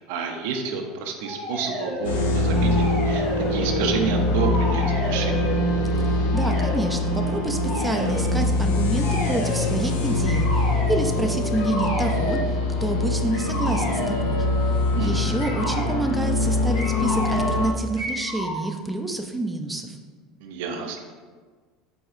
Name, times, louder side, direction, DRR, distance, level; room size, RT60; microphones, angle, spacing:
voice 1, 0.1-3.2 3.5-5.5 15.0-15.6 20.4-21.0, right 4 dB, 75° right, 4 dB, 0.4 m, -29 dB
sound 1, 1.2-2.1 2.5-4.0 4.3-5.6 6.3-6.8 7.6-8.3 9.0-9.7 10.2-11.0 11.5-12.5 13.3-14.5 15.4-15.9 16.7-17.6 18.0-18.6, equal, 65° left, 1.2 m, -31 dB
sound 2, 2.0-17.7, left 2 dB, 85° left, 0.5 m, -23 dB
voice 2, 6.0-14.5 15.0-20.0, right 2 dB, 5° right, 3 dB, 0.3 m, -28 dB
4.2 x 2.7 x 2.4 m, 1.5 s
supercardioid pair, 110°, 0 cm